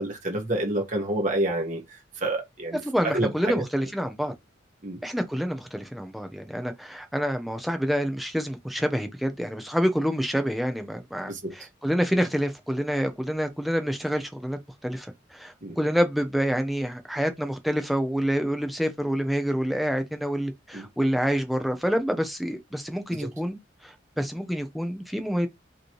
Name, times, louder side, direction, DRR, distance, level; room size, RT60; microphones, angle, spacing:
voice 1, 0.0-2.8 3.0-3.6 4.8-5.0 11.2-11.5 15.6-15.7 20.7-20.9 23.2-23.3, right 1 dB, 40° right, 1.5 m, -28 dB
voice 2, 2.8-4.3 5.0-23.6 23.8-25.5, equal, ahead, 0.8 m, -27 dB
5.1 x 3.3 x 3.1 m
head